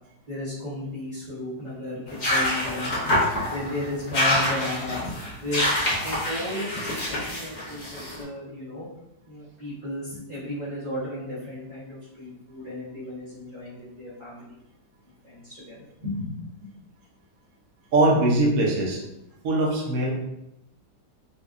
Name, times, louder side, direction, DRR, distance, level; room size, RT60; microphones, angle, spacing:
voice 1, 0.3-2.9 3.4-5.0 5.4-5.7 6.0-8.9 9.3-14.6 15.2-16.3, left 1 dB, 40° right, -12 dB, 0.6 m, -34 dB
sound 1, 2.1-8.2, left 1 dB, 80° left, 0.4 m, -26 dB
voice 2, 17.9-19.0 19.4-20.1, right 2 dB, 65° right, -3 dB, 0.9 m, -21 dB
4.2 x 2.3 x 2.5 m, 0.89 s
omnidirectional pair, 2.1 m